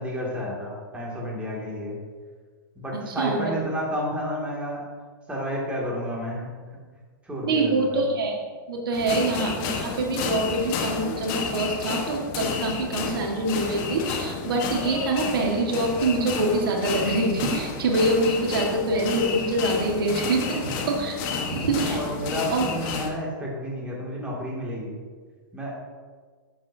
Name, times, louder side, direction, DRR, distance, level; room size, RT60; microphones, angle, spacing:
voice 1, 0.0-2.0 2.8-4.8 5.3-6.5 7.2-8.0 9.0-9.1 21.3-21.5 21.9-24.9 25.5-25.7, equal, 10° right, -4 dB, 2.3 m, -31 dB
voice 2, 3.1-3.5 7.4-8.4 8.7-21.2 21.5-22.0 22.5-22.7, right 2 dB, 80° right, 0 dB, 1.7 m, -25 dB
sound 1, 8.9-23.1, left 5 dB, 45° left, 1.3 m, -31 dB
11.5 x 7.4 x 2.8 m, 1.6 s
hypercardioid pair, 130°, 12 cm